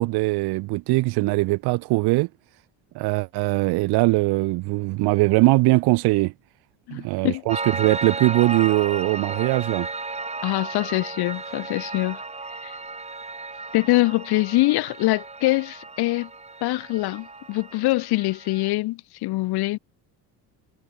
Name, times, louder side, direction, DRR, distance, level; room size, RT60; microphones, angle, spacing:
voice 1, 0.0-2.3 2.9-6.3 6.9-9.9, right 22 dB, 70° right, 0.9 m, -21 dB
voice 2, 6.9-7.5 10.4-12.2 12.6-12.8 13.7-16.3 16.6-19.8, left 19 dB, 70° left, 2.0 m, -24 dB
Piano, 7.5-18.7, right 3 dB, 15° right, 5.6 m, -34 dB
cardioid pair, 115°, 39 cm